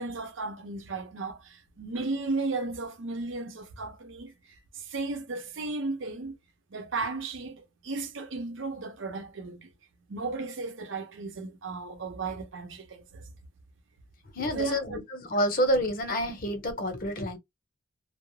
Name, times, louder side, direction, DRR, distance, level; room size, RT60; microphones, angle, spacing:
voice 1, 0.0-4.3 4.7-6.4 6.7-9.7 10.1-13.3 14.5-15.0, right 3 dB, 80° right, 0.7 m, -35 dB
voice 2, 14.3-17.4, equal, 50° left, 0.8 m, -28 dB
2.3 x 2.0 x 3.1 m
head